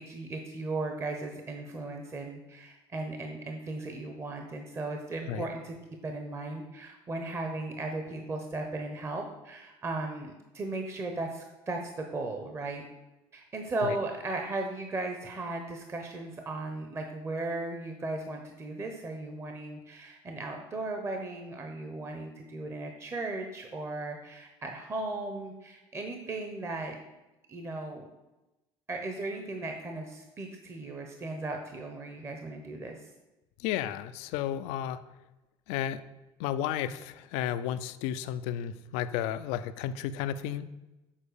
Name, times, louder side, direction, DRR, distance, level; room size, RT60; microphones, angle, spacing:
voice 1, 0.0-5.7 6.0-12.8 13.3-27.0 27.5-28.1 28.9-33.1, right 2 dB, 25° right, 3 dB, 0.9 m, -36 dB
voice 2, 33.6-35.0 35.7-36.0 36.4-40.6, left 10 dB, 90° left, 13 dB, 0.5 m, -33 dB
7.4 x 4.4 x 6.6 m, 1.0 s
cardioid pair, 125°, 11 cm